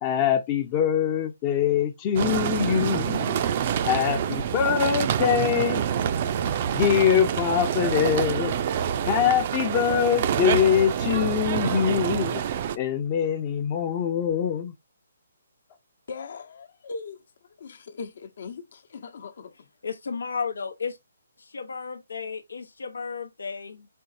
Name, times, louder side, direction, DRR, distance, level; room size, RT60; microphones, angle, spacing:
voice 1, 0.0-3.3 3.8-5.8 6.7-8.5 9.1-12.4 12.8-14.7, left 9 dB, 25° left, 0.6 m, -23 dB
sound 1, 2.2-12.8, right 8 dB, 40° right, 0.5 m, -26 dB
voice 2, 16.1-17.2 17.6-19.7, left 4 dB, 60° left, 1.0 m, -39 dB
voice 3, 19.8-21.0 21.4-23.9, left 5 dB, 80° left, 0.8 m, -33 dB
4.5 x 3.8 x 2.6 m
hypercardioid pair, 155°, 0 cm